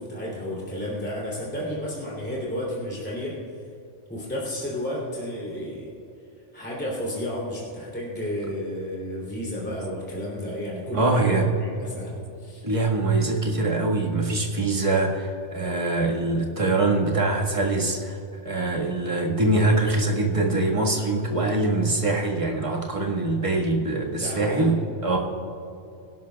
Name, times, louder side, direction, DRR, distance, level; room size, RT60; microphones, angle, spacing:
voice 1, 0.0-3.3 4.1-5.9 6.5-12.6 24.1-24.8 25.1-25.2, left 1 dB, 10° left, -6 dB, 2.9 m, -32 dB
voice 2, 10.9-11.5 12.6-18.2 18.4-24.7 25.0-25.2, right 2 dB, 25° right, -1 dB, 1.6 m, -23 dB
25.0 x 11.5 x 2.3 m, 2.7 s
omnidirectional pair, 1.3 m